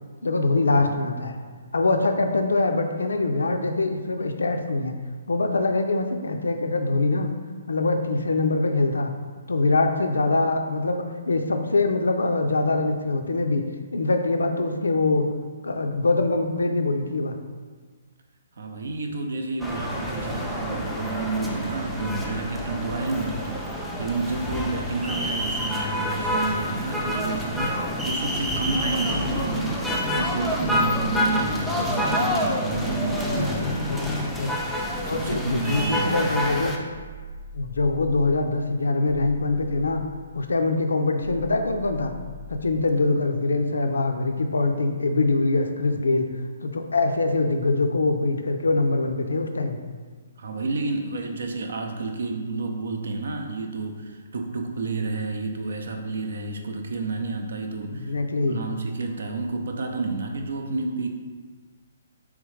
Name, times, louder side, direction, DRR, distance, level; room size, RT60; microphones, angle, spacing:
voice 1, 0.2-1.4 1.7-4.9 5.3-7.3 7.7-9.1 9.5-13.6 13.9-15.3 15.6-17.3 29.1-29.3 33.4-34.5 35.0-36.7 37.5-40.0 40.3-42.1 42.5-46.3 46.6-49.8 57.9-58.6, left 3 dB, 85° left, 6 dB, 0.4 m, -23 dB
voice 2, 18.6-29.8 30.2-34.0 35.0-36.4 50.4-58.1 58.5-61.1, right 3 dB, 70° right, 4 dB, 0.5 m, -30 dB
sound 1, 19.6-36.8, equal, ahead, 0.4 m, -27 dB
sound 2, 36.9-38.5 39.1-40.5 41.2-42.8, left 1 dB, 30° right, 0.9 m, -42 dB
3.5 x 3.3 x 3.2 m, 1.5 s
hypercardioid pair, 140°, 0 cm